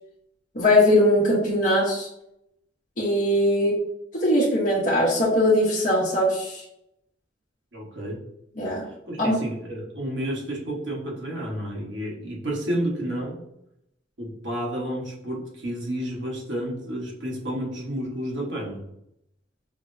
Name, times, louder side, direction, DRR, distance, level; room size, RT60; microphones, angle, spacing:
voice 1, 0.5-2.1 3.0-3.8 4.1-6.6 8.6-8.8 9.2-9.4, left 1 dB, 45° left, -7 dB, 0.9 m, -20 dB
voice 2, 7.7-8.2 9.1-13.4 14.2-18.8, right 1 dB, 75° right, -3 dB, 1.2 m, -31 dB
5.8 x 2.0 x 2.5 m, 0.80 s
head